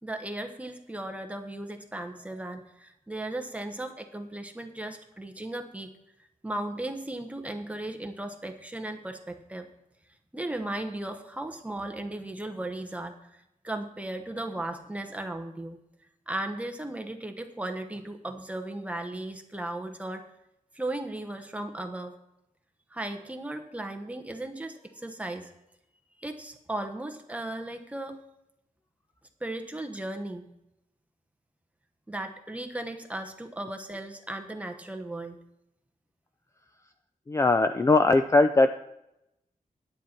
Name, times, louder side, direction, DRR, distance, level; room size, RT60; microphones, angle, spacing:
voice 1, 0.0-5.9 6.4-9.7 10.3-15.8 16.3-20.3 20.7-22.1 22.9-25.5 26.2-28.2 29.4-30.5 32.1-35.4, right 1 dB, 10° right, 5 dB, 0.9 m, -36 dB
voice 2, 37.3-38.8, left 3 dB, 20° left, 9 dB, 0.3 m, -20 dB
10.0 x 9.4 x 4.4 m, 0.84 s
wide cardioid pair, 160°, 14 cm